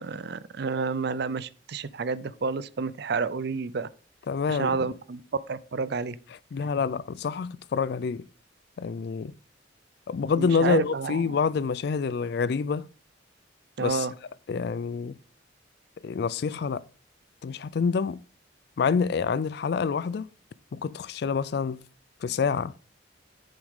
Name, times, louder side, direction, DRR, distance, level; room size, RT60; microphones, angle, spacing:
voice 1, 0.0-3.9 4.5-5.2 5.5-6.2 10.4-11.2 13.8-14.1, right 4 dB, 60° right, 0.5 m, -30 dB
voice 2, 4.3-4.9 6.5-8.3 8.8-9.3 10.1-12.9 13.8-14.1 14.5-15.2 16.0-16.8 17.4-18.2 18.8-20.3 20.7-21.8 22.2-22.7, left 5 dB, 60° left, 0.4 m, -27 dB
7.8 x 7.2 x 3.6 m
head